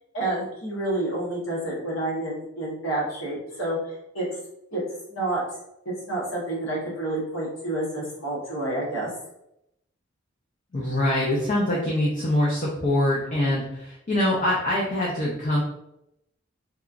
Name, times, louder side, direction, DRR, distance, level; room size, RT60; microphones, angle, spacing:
voice 1, 0.1-4.3 4.7-4.8 5.1-5.4 5.8-9.1, right 2 dB, 75° left, -5 dB, 1.1 m, -29 dB
voice 2, 10.7-15.6, left 1 dB, 40° left, -5 dB, 0.5 m, -24 dB
2.9 x 2.3 x 2.4 m, 0.83 s
head